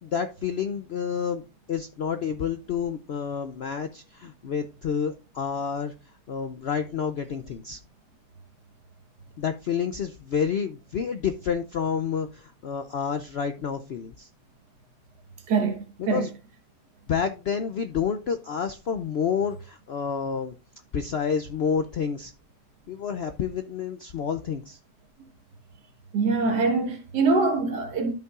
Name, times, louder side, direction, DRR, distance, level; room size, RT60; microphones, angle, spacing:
voice 1, 0.0-1.4 1.7-5.9 6.3-7.8 9.4-14.3 16.0-16.3 17.1-20.5 20.9-22.3 22.9-24.8, left 7 dB, 70° left, 0.6 m, -29 dB
voice 2, 15.5-16.3 26.1-28.1, right 4 dB, 80° right, 1.9 m, -24 dB
13.0 x 5.5 x 2.4 m
omnidirectional pair, 1.8 m